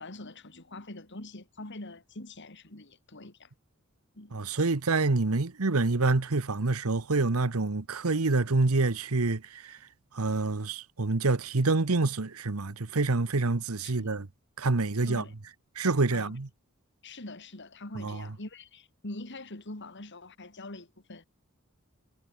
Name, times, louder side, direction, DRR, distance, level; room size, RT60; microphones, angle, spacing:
voice 1, 0.0-3.5 4.1-4.4 13.8-14.2 15.1-15.3 16.1-16.4 17.0-21.2, left 2 dB, 55° left, 2.9 m, -44 dB
voice 2, 4.3-9.8 10.1-14.3 14.6-15.2 15.8-16.5 18.0-18.2, right 3 dB, 80° right, 1.1 m, -27 dB
head